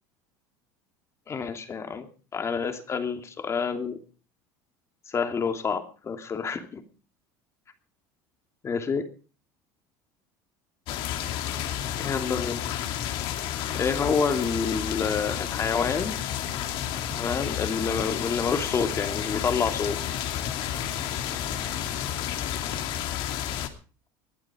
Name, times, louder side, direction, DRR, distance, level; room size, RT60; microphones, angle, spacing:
voice 1, 1.3-2.1 2.3-4.0 5.1-6.8 8.6-9.1 12.0-12.6 13.7-16.2 17.2-20.0, left 5 dB, 30° left, 7 dB, 2.8 m, -28 dB
sound 1, 10.9-23.7, left 11 dB, 65° left, 2.7 m, -31 dB
sound 2, 16.4-22.1, left 2 dB, 10° left, 2.4 m, -45 dB
20.5 x 12.0 x 5.0 m, 0.37 s
supercardioid pair, 110°, 9 cm